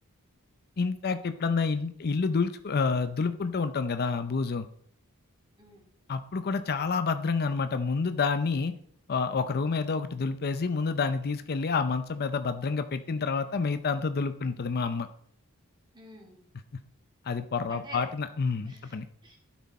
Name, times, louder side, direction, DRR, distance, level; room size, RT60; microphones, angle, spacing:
voice 1, 0.8-4.7 6.1-8.7 9.1-15.1 17.3-19.1, left 4 dB, 45° left, 10 dB, 0.5 m, -28 dB
voice 2, 15.9-16.4 17.7-18.1 18.6-19.0 19.2-19.4, right 1 dB, 20° right, 0 dB, 2.5 m, -46 dB
12.0 x 6.2 x 4.2 m, 0.62 s
head